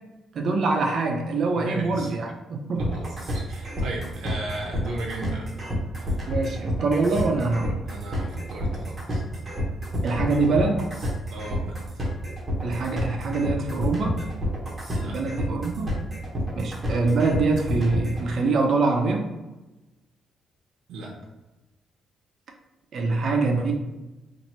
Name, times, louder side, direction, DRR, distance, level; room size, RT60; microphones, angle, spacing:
voice 1, 0.3-2.8 6.3-7.8 10.0-10.9 12.6-14.2 15.0-15.9 16.6-19.3 22.9-23.7, right 3 dB, 45° right, 2 dB, 0.5 m, -24 dB
voice 2, 1.5-2.1 2.8-5.6 6.0-6.2 7.8-9.2 11.3-11.8 14.9-15.2 20.9-21.1, right 2 dB, 85° right, -2 dB, 0.7 m, -36 dB
sound 1, 2.8-18.2, equal, 20° right, 0.9 m, -29 dB
2.8 x 2.6 x 4.2 m, 1.1 s
cardioid pair, 175°, 0 cm